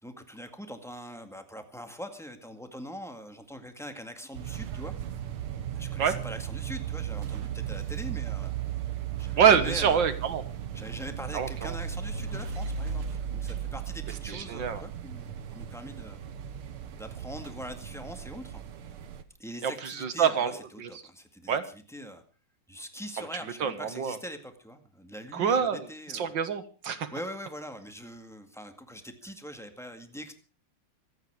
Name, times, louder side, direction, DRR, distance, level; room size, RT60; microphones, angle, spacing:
voice 1, 0.0-4.9 5.7-8.5 9.2-10.1 10.7-16.2 16.9-18.6 19.4-22.2 22.7-26.3 27.1-30.3, equal, ahead, 7 dB, 1.7 m, -42 dB
sound 1, 4.3-19.2, right 9 dB, 80° right, 2.1 m, -36 dB
voice 2, 9.4-10.4 11.3-11.7 14.3-14.8 19.6-20.5 20.8-20.9 21.5-21.6 23.6-24.2 25.3-25.8 26.1-27.1, right 7 dB, 60° right, 10 dB, 2.1 m, -25 dB
25.5 x 9.1 x 4.9 m, 0.37 s
omnidirectional pair, 2.4 m